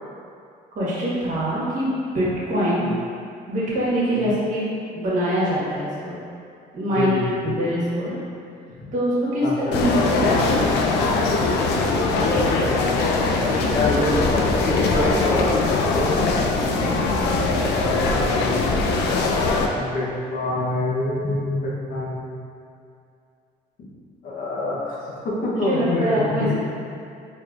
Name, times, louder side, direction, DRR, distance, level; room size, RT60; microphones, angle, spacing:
voice 1, 0.7-2.9 3.5-6.1 6.7-7.2 7.4-8.2 8.9-10.8 16.7-17.9 25.5-26.5, equal, 50° right, -8 dB, 1.4 m, -24 dB
voice 2, 6.9-7.7 8.8-8.9 9.4-9.8 13.6-16.1 17.7-18.4 19.7-22.3 23.8-23.9 24.2-26.5, left 1 dB, 55° left, -5 dB, 0.9 m, -26 dB
sound 1, 9.7-19.7, left 3 dB, 85° left, 0.4 m, -21 dB
sound 2, 10.8-16.5, left 1 dB, 5° left, 0.4 m, -34 dB
4.6 x 3.0 x 2.4 m, 2.5 s
cardioid pair, 110°, 17 cm